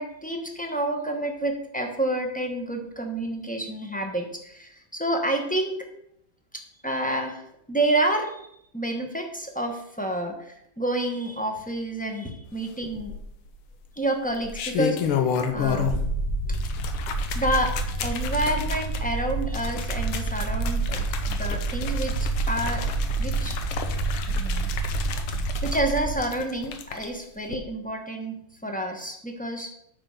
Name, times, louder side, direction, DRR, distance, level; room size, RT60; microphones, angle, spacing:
voice 1, 0.0-5.9 6.8-13.1 14.0-15.2 15.5-16.0 16.5-16.6 17.3-17.7 18.0-22.1 22.5-23.6 24.3-24.7 25.6-29.7, right 1 dB, 10° left, 3 dB, 0.4 m, -29 dB
sound 1, 12.8-13.5 14.3-16.1 16.4-27.1 27.4-27.6, left 7 dB, 90° left, 1.8 m, -31 dB
sound 2, 15.6-26.1, right 3 dB, 50° left, 4.1 m, -28 dB
8.9 x 4.6 x 6.5 m, 0.73 s
omnidirectional pair, 2.3 m